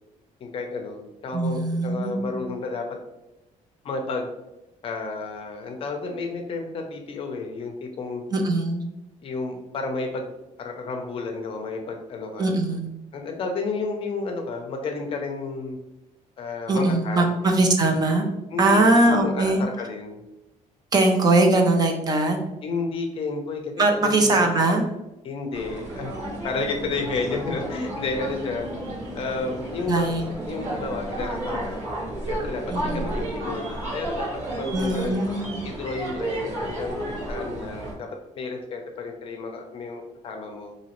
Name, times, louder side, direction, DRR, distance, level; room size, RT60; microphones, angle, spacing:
voice 1, 0.4-2.8 3.8-4.3 4.8-8.2 9.2-10.3 10.6-12.5 13.1-15.8 16.4-17.3 18.5-20.2 22.6-24.4 25.2-26.1 26.4-28.7 29.2-30.1 30.5-31.9 32.2-35.2 35.6-38.1 38.3-40.7, left 3 dB, 40° left, 3 dB, 0.5 m, -31 dB
voice 2, 1.3-2.4 8.3-8.8 12.4-12.9 16.7-18.3 18.6-19.6 20.9-22.4 23.8-24.8 29.9-30.3 32.7-33.2 34.7-35.6, right 2 dB, 30° right, 3 dB, 0.4 m, -21 dB
sound 1, 25.5-37.9, right 1 dB, 55° right, 1.3 m, -32 dB
3.9 x 2.7 x 2.9 m, 0.95 s
cardioid pair, 170°, 14 cm